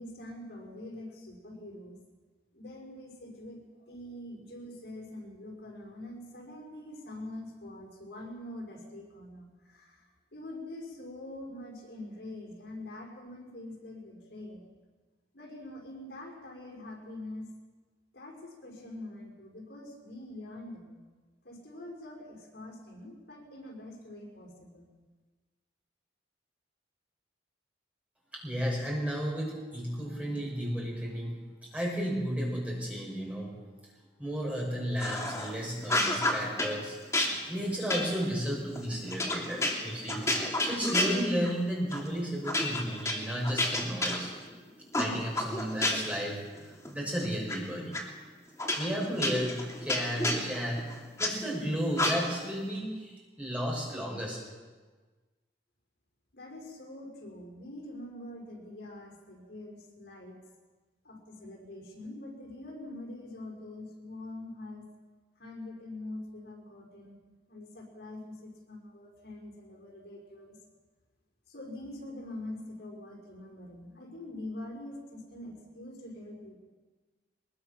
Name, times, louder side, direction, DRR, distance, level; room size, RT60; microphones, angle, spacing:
voice 1, 0.0-2.0 2.5-14.6 15.3-17.5 18.1-20.9 21.4-24.9 56.3-60.4 61.0-64.9 65.4-67.2 67.5-70.6 71.5-76.6, left 1 dB, 70° left, 0 dB, 5.8 m, -44 dB
voice 2, 28.3-33.5 34.2-37.0 37.5-40.3 40.6-44.3 45.0-48.0 48.8-54.4, equal, 5° right, -2 dB, 6.3 m, -33 dB
sound 1, 35.0-35.5 35.8-36.8 37.1-41.6 41.9-42.1 42.4-44.5 44.9-46.2 46.6-47.6 47.9-48.0 48.6-51.3 51.9-52.5, left 1 dB, 15° left, 3.0 m, -31 dB
22.5 x 22.0 x 6.0 m, 1.3 s
head